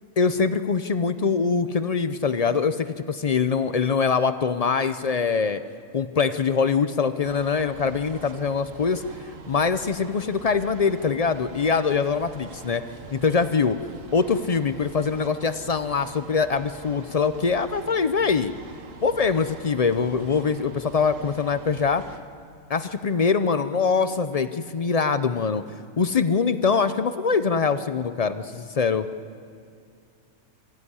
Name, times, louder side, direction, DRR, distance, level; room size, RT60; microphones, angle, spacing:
voice 1, 0.2-5.6 5.9-9.0 9.5-12.8 13.1-13.8 14.1-18.5 19.0-22.0 22.7-25.6 26.0-29.0, left 5 dB, 50° left, 11 dB, 0.4 m, -23 dB
sound 1, 7.2-22.2, right 4 dB, 65° right, 1.5 m, -44 dB
25.5 x 15.5 x 9.8 m, 2.3 s
omnidirectional pair, 1.5 m